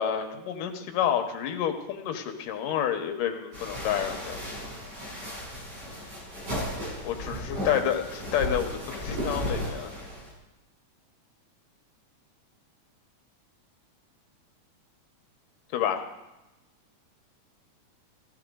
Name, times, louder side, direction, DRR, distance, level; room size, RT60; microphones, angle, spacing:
voice 1, 0.0-4.4 7.0-9.9 15.7-16.0, left 9 dB, 85° left, 6 dB, 2.7 m, -29 dB
sound 1, 3.5-10.3, equal, 80° right, 7.7 m, -35 dB
15.5 x 14.5 x 3.8 m, 0.99 s
omnidirectional pair, 3.7 m